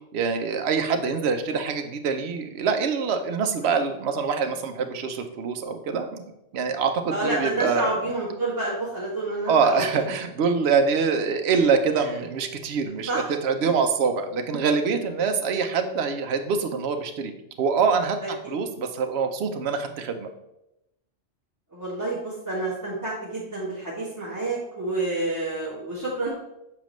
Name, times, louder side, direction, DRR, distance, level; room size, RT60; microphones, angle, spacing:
voice 1, 0.1-6.2 6.5-7.9 9.5-17.3 17.6-20.3, right 5 dB, 60° right, 6 dB, 0.9 m, -25 dB
voice 2, 7.1-9.8 13.1-13.3 21.7-26.3, right 2 dB, 15° right, -10 dB, 1.9 m, -28 dB
7.3 x 5.0 x 3.1 m, 0.86 s
omnidirectional pair, 1.3 m